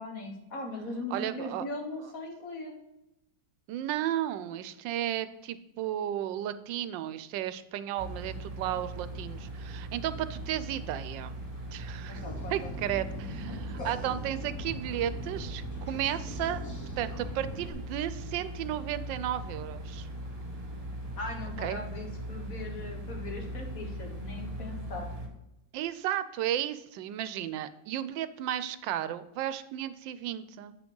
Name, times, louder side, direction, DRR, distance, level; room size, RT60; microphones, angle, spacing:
voice 1, 0.0-2.7 12.1-12.8 13.1-13.9 21.2-25.1, left 2 dB, 50° left, 2 dB, 1.7 m, -39 dB
voice 2, 1.1-1.6 3.7-11.4 11.7-12.2 12.5-16.6 17.0-20.1 21.6-21.9 25.7-30.8, right 11 dB, 85° right, 13 dB, 1.3 m, -34 dB
sound 1, 8.0-25.3, right 1 dB, 35° right, 1.6 m, -40 dB
sound 2, 12.1-17.7, equal, 15° left, 0.6 m, -42 dB
7.8 x 6.0 x 3.8 m, 0.89 s
omnidirectional pair, 2.0 m